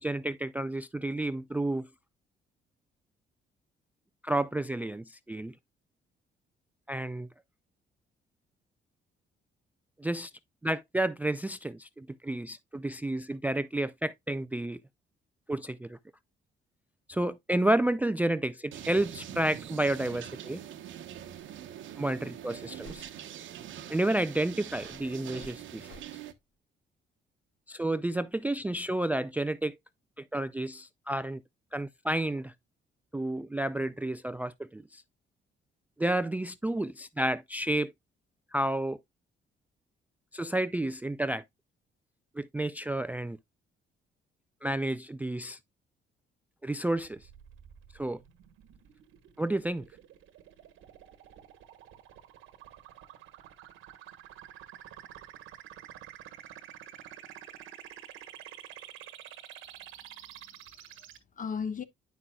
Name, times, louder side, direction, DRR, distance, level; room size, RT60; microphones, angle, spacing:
voice 1, 0.0-1.9 4.2-5.5 6.9-7.3 10.0-10.3 10.6-14.8 15.5-16.0 17.1-20.6 22.0-23.1 23.9-25.9 27.7-29.8 30.2-31.4 31.7-32.5 33.1-35.0 36.0-37.9 38.5-39.0 40.3-41.4 42.4-43.4 44.6-45.6 46.6-47.3 47.9-48.2 49.4-49.9, right 1 dB, 10° right, 0.4 m, -31 dB
sound 1, 18.7-26.3, right 10 dB, 75° right, 1.0 m, -44 dB
sound 2, 21.3-21.5 21.7-21.8 22.8-23.1 23.9-24.0 24.6-26.1, left 1 dB, 75° left, 4.6 m, -52 dB
sound 3, 47.0-61.2, right 11 dB, 90° right, 1.4 m, -49 dB
voice 2, 60.0-61.8, left 6 dB, 40° left, 1.1 m, -39 dB
9.3 x 6.0 x 2.3 m
cardioid pair, 90°, 20 cm